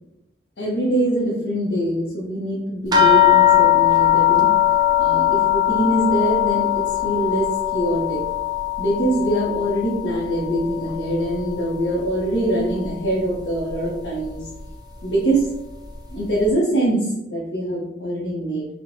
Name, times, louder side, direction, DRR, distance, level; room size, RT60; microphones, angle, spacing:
voice 1, 0.6-4.5 5.0-8.3 8.8-14.4 15.0-15.5 16.1-18.7, right 1 dB, 75° left, -6 dB, 0.8 m, -23 dB
sound 1, 2.9-11.7 12.1-12.9 13.7-13.8 14.2-14.4, left 12 dB, 25° right, 0.4 m, -20 dB
4.3 x 2.1 x 2.7 m, 0.84 s
head